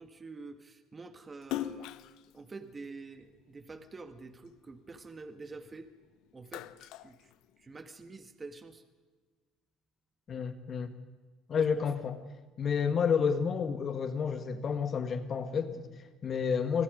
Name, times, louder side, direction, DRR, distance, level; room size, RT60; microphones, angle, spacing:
voice 1, 0.0-1.9 2.3-5.9 6.3-7.3 7.6-8.8 11.6-11.9, right 3 dB, 25° right, 1.9 m, -47 dB
Splash splatter, 1.4-4.0 4.4-5.9 6.2-8.0, left 13 dB, 70° left, 0.8 m, -41 dB
voice 2, 10.3-10.9 11.5-12.2 12.6-16.8, left 6 dB, 40° left, 1.8 m, -30 dB
29.0 x 20.5 x 5.2 m
supercardioid pair, 95°, 0 cm